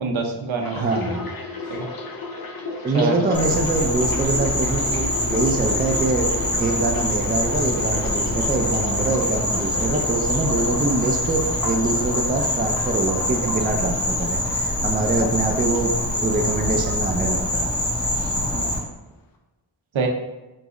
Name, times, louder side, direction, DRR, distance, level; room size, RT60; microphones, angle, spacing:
voice 1, 0.0-0.9 1.7-1.9 2.9-3.3 18.4-18.7 19.9-20.1, right 4 dB, 75° right, 2 dB, 0.7 m, -26 dB
sound 1, 0.6-16.6 16.8-17.8 18.0-18.4, left 3 dB, 50° left, 0.6 m, -34 dB
voice 2, 0.7-1.3 2.8-17.7 18.1-18.3, right 2 dB, 20° right, 3 dB, 0.4 m, -24 dB
Insect, 3.3-18.8, left 1 dB, 10° left, 0.7 m, -24 dB
4.9 x 2.0 x 3.7 m, 1.1 s
wide cardioid pair, 100°, 48 cm